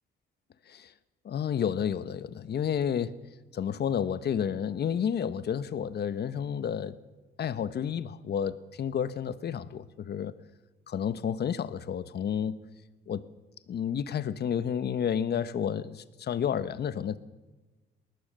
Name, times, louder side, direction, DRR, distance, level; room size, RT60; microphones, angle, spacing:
voice 1, 1.2-3.2 3.5-7.0 7.4-10.4 10.9-12.6 13.1-13.2 13.7-17.2, left 8 dB, 55° left, 14 dB, 1.2 m, -30 dB
20.5 x 19.0 x 6.7 m, 1.2 s
cardioid pair, 90°, 20 cm